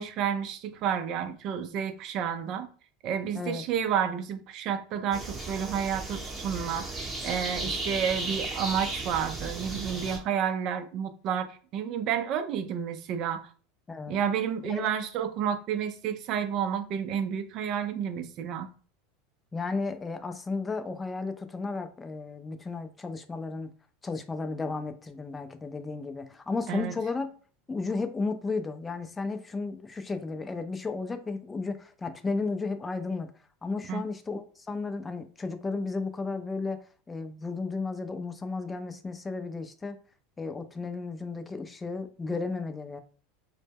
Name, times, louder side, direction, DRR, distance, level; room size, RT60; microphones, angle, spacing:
voice 1, 0.0-2.7 3.0-13.4 14.1-18.7 26.7-26.9 33.9-34.0, right 8 dB, 50° right, 0.4 m, -30 dB
sound 1, 5.1-10.2, right 2 dB, 15° right, 0.8 m, -35 dB
voice 2, 13.9-14.2 14.6-14.9 19.5-23.7 24.0-27.3 27.7-33.3 33.6-36.8 37.1-40.0 40.4-43.0, left 3 dB, 20° left, 0.4 m, -33 dB
2.0 x 2.0 x 3.4 m
hypercardioid pair, 95°, 0 cm